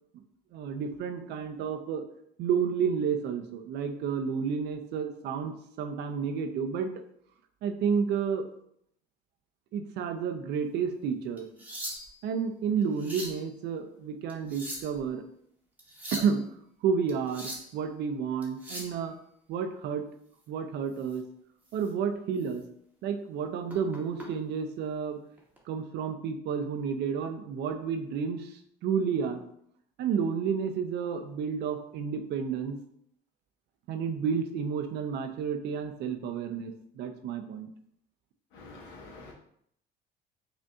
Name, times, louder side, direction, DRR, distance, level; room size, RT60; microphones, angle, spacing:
voice 1, 0.5-2.0 2.4-6.9 7.6-8.5 9.7-11.5 12.2-15.2 16.1-16.4 16.8-19.1 19.5-20.1 20.5-21.2 21.7-22.6 23.0-25.2 25.7-29.4 30.0-32.8 33.9-37.7, right 6 dB, 65° right, 7 dB, 0.5 m, -31 dB
sound 1, 11.4-12.3 12.8-13.4 14.3-15.0 15.8-16.3 17.1-17.7 18.4-19.0 21.0-21.2 21.7-21.9 22.4-22.5 23.7-24.3 25.4-25.6, equal, 10° right, 0.9 m, -40 dB
voice 2, 38.5-39.3, left 3 dB, 75° left, -1 dB, 1.2 m, -47 dB
5.0 x 2.6 x 2.3 m, 0.69 s
cardioid pair, 120°, 19 cm